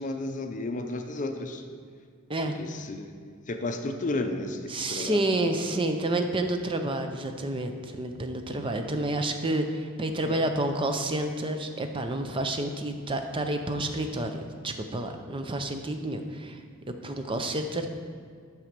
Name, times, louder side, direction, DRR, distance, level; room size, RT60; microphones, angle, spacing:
voice 1, 0.0-1.6 2.6-5.2 5.7-5.8 10.1-10.4, left 2 dB, 35° left, 5 dB, 0.6 m, -33 dB
voice 2, 4.7-16.6 16.9-17.9, right 1 dB, 25° right, 6 dB, 0.5 m, -29 dB
7.3 x 6.1 x 5.2 m, 2.1 s
head